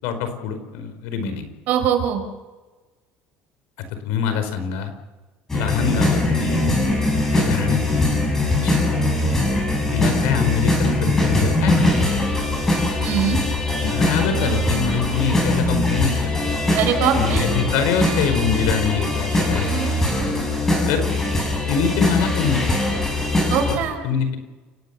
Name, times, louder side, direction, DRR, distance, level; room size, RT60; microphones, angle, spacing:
voice 1, 0.0-1.5 4.0-4.9 5.5-6.6 7.1-8.9 9.9-12.2 13.8-16.1 16.4-16.5 17.1-20.1 20.9-21.0 21.7-22.6 23.6-24.4, left 6 dB, 85° left, 9 dB, 4.9 m, -24 dB
voice 2, 1.7-2.2 13.0-13.4 16.7-17.5 23.5-24.0, right 8 dB, 55° right, 5 dB, 5.9 m, -21 dB
sound 1, 5.5-23.7, left 2 dB, 10° left, 6.8 m, -21 dB
29.0 x 18.0 x 7.0 m, 1.2 s
cardioid pair, 160°, 4 cm